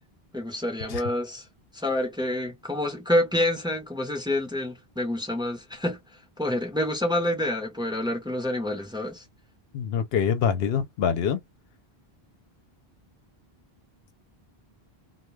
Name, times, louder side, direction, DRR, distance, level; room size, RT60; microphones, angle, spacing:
voice 1, 0.3-1.4 1.7-6.0 6.4-9.2, left 1 dB, 5° right, 0.8 m, -27 dB
voice 2, 9.7-11.4, left 7 dB, 75° left, 0.8 m, -25 dB
2.2 x 2.1 x 3.1 m
omnidirectional pair, 1.0 m